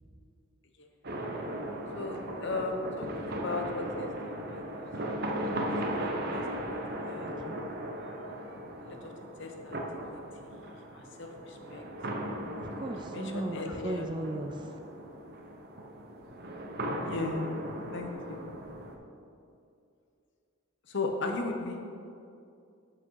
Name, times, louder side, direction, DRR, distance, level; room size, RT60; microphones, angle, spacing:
sound 1, 1.0-19.0, right 1 dB, 45° right, 0.8 m, -37 dB
voice 1, 1.9-4.6 6.0-6.8 7.0-7.3 8.8-9.1 9.4-9.8 10.1-10.2 10.9-11.8 13.1-14.1 17.0-17.5 17.9-18.4 20.9-21.8, left 3 dB, 55° left, 4 dB, 0.8 m, -37 dB
voice 2, 7.2-7.6 12.6-14.7, right 1 dB, 20° right, 5 dB, 0.4 m, -36 dB
8.0 x 5.9 x 4.6 m, 2.5 s
head